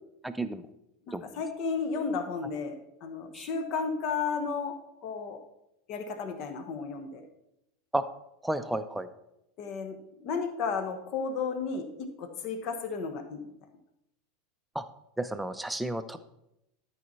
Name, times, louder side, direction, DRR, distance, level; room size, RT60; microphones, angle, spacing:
voice 1, 0.2-0.6 1.1-1.2 3.3-3.5 7.9-8.0 8.4-9.1 14.7-14.8 15.2-16.2, right 1 dB, 5° right, 9 dB, 0.6 m, -32 dB
voice 2, 1.1-5.4 5.9-7.3 9.6-13.5, left 5 dB, 45° left, 8 dB, 1.1 m, -33 dB
12.0 x 5.7 x 4.1 m, 0.85 s
figure-of-eight pair, 80°, 0 cm